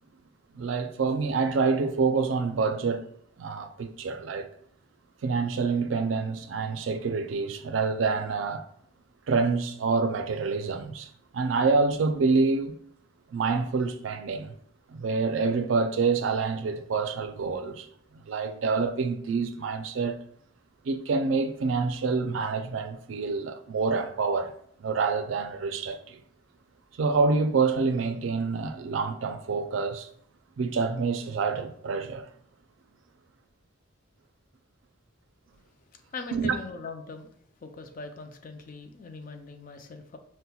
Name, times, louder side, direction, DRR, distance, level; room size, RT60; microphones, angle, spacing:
voice 1, 0.5-3.1 3.4-4.5 5.2-8.7 9.3-12.8 13.3-14.5 14.9-17.9 18.1-20.2 20.8-24.5 24.8-26.2 27.0-30.1 30.6-32.3 36.3-36.6, right 4 dB, 75° right, 0.4 m, -27 dB
voice 2, 36.1-37.3 37.6-40.2, left 3 dB, 45° left, 0.4 m, -40 dB
5.5 x 2.1 x 2.2 m
head